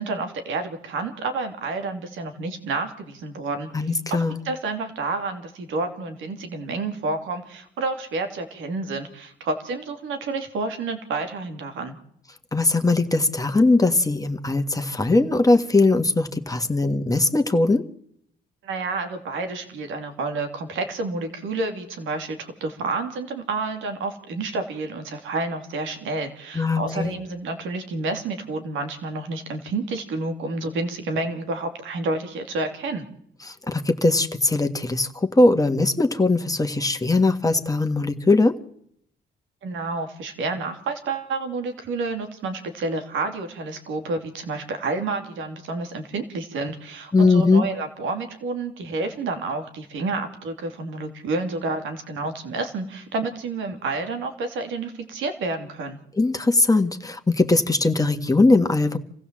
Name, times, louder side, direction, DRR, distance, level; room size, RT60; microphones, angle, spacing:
voice 1, 0.0-12.0 18.6-33.1 39.6-56.0, right 3 dB, 85° right, 6 dB, 2.9 m, -29 dB
voice 2, 3.7-4.4 12.5-17.9 26.5-27.1 33.4-38.6 47.1-47.7 56.1-59.0, left 2 dB, 20° left, 6 dB, 1.6 m, -20 dB
27.0 x 16.0 x 7.6 m, 0.71 s
cardioid pair, 70°, 20 cm